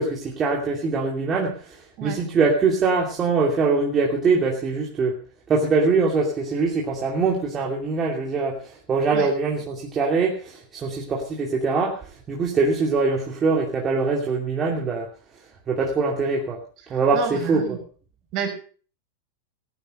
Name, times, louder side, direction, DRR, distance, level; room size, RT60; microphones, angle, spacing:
voice 1, 0.0-5.2 5.5-12.0 12.3-15.1 15.7-16.6 16.9-17.6, right 4 dB, 25° right, -1 dB, 2.6 m, -23 dB
voice 2, 16.9-17.8 18.3-18.5, right 8 dB, 45° right, 3 dB, 5.2 m, -30 dB
14.5 x 10.5 x 5.5 m, 0.42 s
hypercardioid pair, 110°, 0 cm